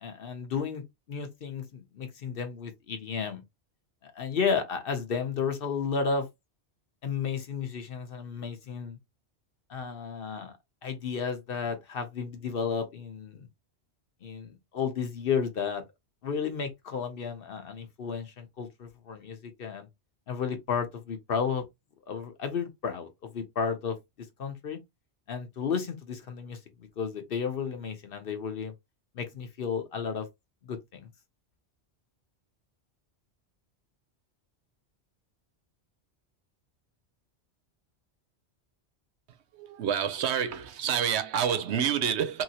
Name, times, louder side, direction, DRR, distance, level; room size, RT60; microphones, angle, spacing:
voice 1, 0.0-3.4 4.0-6.3 7.0-9.0 9.7-10.6 10.8-13.5 14.2-15.8 16.2-19.9 20.3-21.6 22.1-24.0 24.4-24.8 25.3-28.7 29.1-30.3 30.6-31.1, left 6 dB, 60° left, 0.9 m, -33 dB
voice 2, 39.5-42.4, right 8 dB, 80° right, 0.9 m, -28 dB
3.1 x 2.8 x 2.7 m
omnidirectional pair, 1.1 m